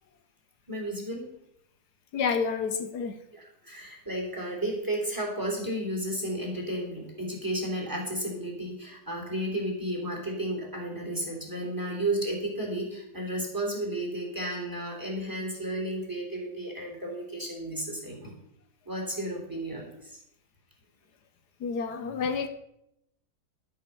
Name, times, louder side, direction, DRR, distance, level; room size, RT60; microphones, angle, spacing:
voice 1, 0.7-1.2 3.3-18.3 18.8-20.2, right 1 dB, 10° right, 0 dB, 3.2 m, -33 dB
voice 2, 2.1-3.2 21.6-22.5, left 5 dB, 80° left, 8 dB, 1.4 m, -29 dB
12.0 x 6.6 x 6.8 m, 0.81 s
omnidirectional pair, 1.7 m